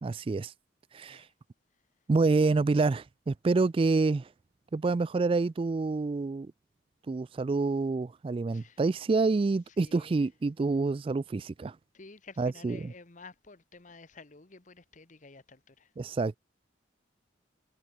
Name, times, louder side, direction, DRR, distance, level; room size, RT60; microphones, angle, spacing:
voice 1, 0.0-0.5 0.9-1.3 2.1-4.3 4.7-6.5 7.1-11.8 12.4-12.9 16.0-16.3, right 3 dB, 30° right, 0.3 m, -27 dB
voice 2, 9.8-10.2 11.9-15.9, left 3 dB, 45° left, 1.2 m, -52 dB
head